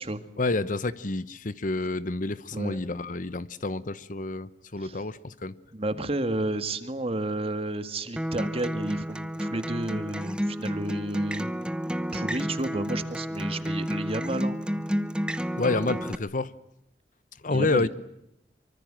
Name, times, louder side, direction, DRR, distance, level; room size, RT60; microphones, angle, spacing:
voice 1, 0.4-5.5 15.6-16.5 17.4-17.9, left 3 dB, 50° left, 16 dB, 0.9 m, -29 dB
voice 2, 5.7-11.5 12.1-14.6 17.5-17.9, right 1 dB, 35° right, 10 dB, 1.9 m, -31 dB
Acoustic guitar, 8.2-16.1, equal, 5° right, 1.0 m, -30 dB
25.0 x 24.5 x 7.6 m, 0.83 s
head